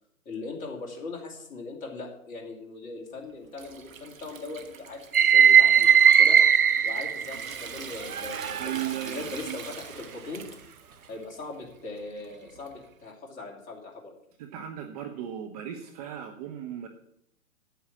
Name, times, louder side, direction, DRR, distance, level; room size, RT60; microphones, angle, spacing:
voice 1, 0.2-6.4 6.8-10.4 11.1-14.2, left 3 dB, 20° left, 0 dB, 2.6 m, -40 dB
Water tap faucet / Sink (filling or washing) / Trickle dribble, 3.1-13.0, right 6 dB, 65° right, 1.5 m, -45 dB
sound 1, 5.1-7.6 8.1-9.0, right 8 dB, 90° right, 0.6 m, -19 dB
voice 2, 8.6-9.6 14.4-16.9, right 10 dB, 25° right, 4 dB, 1.0 m, -36 dB
9.0 x 9.0 x 7.3 m, 0.72 s
figure-of-eight pair, 125°, 43 cm